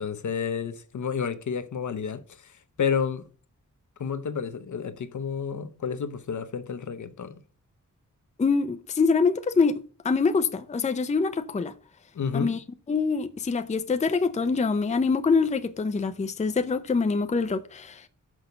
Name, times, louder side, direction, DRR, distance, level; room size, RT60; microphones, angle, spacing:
voice 1, 0.0-3.3 4.0-7.4 12.1-12.5, left 6 dB, 65° left, 0.8 m, -30 dB
voice 2, 8.4-11.7 12.3-12.6 12.9-18.1, left 4 dB, 20° left, 0.5 m, -25 dB
6.3 x 5.1 x 6.7 m
wide cardioid pair, 160°, 32 cm